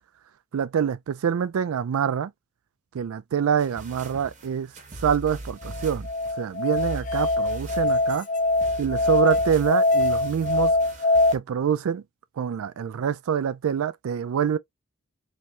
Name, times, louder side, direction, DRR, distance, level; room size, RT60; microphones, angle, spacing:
voice 1, 0.5-2.3 2.9-4.7 5.0-6.1 6.4-8.3 8.8-10.8 11.3-12.0 12.4-14.6, right 8 dB, 85° right, 0.4 m, -25 dB
sound 1, 3.6-11.4, right 1 dB, 35° right, 0.9 m, -39 dB
Musical instrument, 5.6-11.3, left 2 dB, 35° left, 0.3 m, -23 dB
3.3 x 3.0 x 2.5 m
head